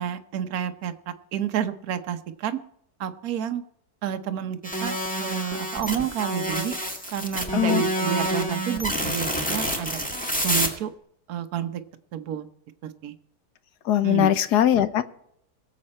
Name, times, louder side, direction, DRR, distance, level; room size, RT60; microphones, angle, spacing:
voice 1, 0.0-2.6 3.0-3.6 4.0-6.7 7.1-10.0 10.4-10.9 11.3-11.8 12.1-12.5 12.8-13.1 14.0-14.3, right 9 dB, 60° right, 8 dB, 1.4 m, -30 dB
sound 1, 4.6-10.7, equal, 5° left, 1.7 m, -28 dB
voice 2, 13.8-15.0, left 11 dB, 70° left, 13 dB, 1.3 m, -20 dB
22.5 x 7.7 x 4.3 m, 0.72 s
omnidirectional pair, 1.9 m